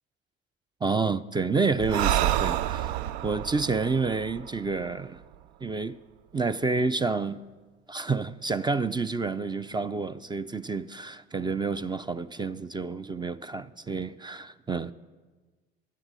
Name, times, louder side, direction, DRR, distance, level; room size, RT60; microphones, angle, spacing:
voice 1, 0.8-3.0 3.2-5.2 5.6-6.0 6.3-7.4 7.9-14.9, right 4 dB, 15° right, 0.4 m, -29 dB
Breathing, 1.8-5.3, right 12 dB, 75° right, 0.5 m, -29 dB
11.5 x 8.4 x 7.6 m
hypercardioid pair, 60°, 32 cm